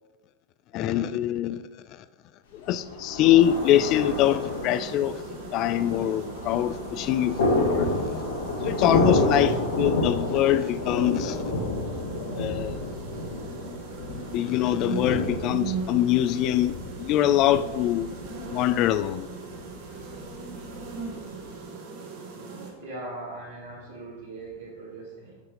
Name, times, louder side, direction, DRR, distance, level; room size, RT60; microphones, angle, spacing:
voice 1, 0.7-1.6 2.7-5.1 5.5-7.9 8.6-11.4 12.4-12.9 14.3-16.7 17.0-18.1 18.5-19.3, left 12 dB, 40° left, 0.3 m, -23 dB
Thunder, 2.6-21.5, left 2 dB, 60° left, 1.3 m, -30 dB
sound 1, 3.4-22.7, right 5 dB, 50° right, 1.3 m, -40 dB
voice 2, 22.7-25.4, right 2 dB, 65° right, 1.4 m, -40 dB
6.1 x 5.7 x 3.9 m
figure-of-eight pair, 90°, 0 cm